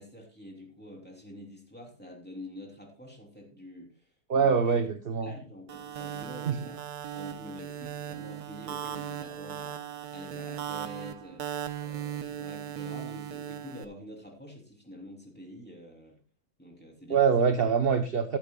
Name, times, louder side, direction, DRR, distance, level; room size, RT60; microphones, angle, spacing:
voice 1, 0.0-4.1 4.4-4.8 5.2-6.8 7.1-16.2 16.6-17.2, left 1 dB, 5° left, 0 dB, 3.2 m, -47 dB
voice 2, 4.3-5.3 6.5-6.6 17.1-18.4, right 6 dB, 45° right, 8 dB, 0.8 m, -24 dB
sound 1, 5.7-13.8, right 10 dB, 80° right, 1.4 m, -38 dB
14.0 x 12.0 x 2.3 m, 0.36 s
omnidirectional pair, 1.6 m